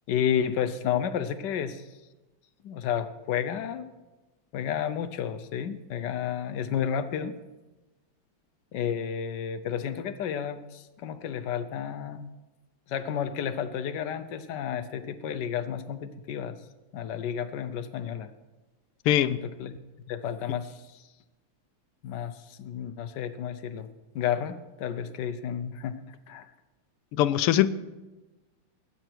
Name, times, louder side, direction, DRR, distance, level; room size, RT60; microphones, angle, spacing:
voice 1, 0.1-1.8 2.6-3.9 4.5-7.3 8.7-12.3 12.9-16.6 16.9-18.3 19.3-19.7 20.1-21.0 22.0-23.9 24.1-26.0 26.3-26.5, left 8 dB, 65° left, 1.1 m, -31 dB
voice 2, 19.1-19.4 27.1-27.7, left 12 dB, 90° left, 1.5 m, -22 dB
21.0 x 8.9 x 4.5 m
omnidirectional pair, 2.4 m